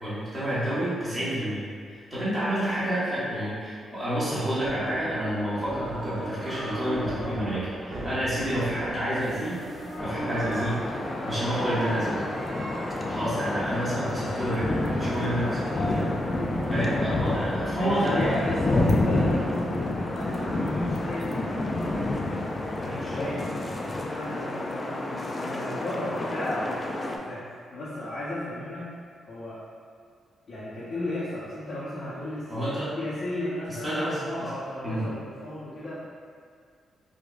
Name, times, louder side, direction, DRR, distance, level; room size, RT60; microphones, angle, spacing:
voice 1, 0.0-9.6 10.0-10.8 11.3-12.2 13.1-16.1 16.7-18.3 32.5-32.9 33.8-34.5 34.8-35.1, equal, 5° right, -13 dB, 1.2 m, -29 dB
sound 1, 4.6-17.4, equal, 50° right, 0.7 m, -37 dB
sound 2, 10.0-27.2, left 2 dB, 25° left, 0.3 m, -29 dB
voice 2, 17.7-21.7 22.2-28.9 29.3-29.6 30.5-32.7 33.0-36.0, left 1 dB, 45° left, -12 dB, 0.8 m, -35 dB
4.9 x 2.2 x 2.4 m, 2.1 s
cardioid pair, 130°, 0 cm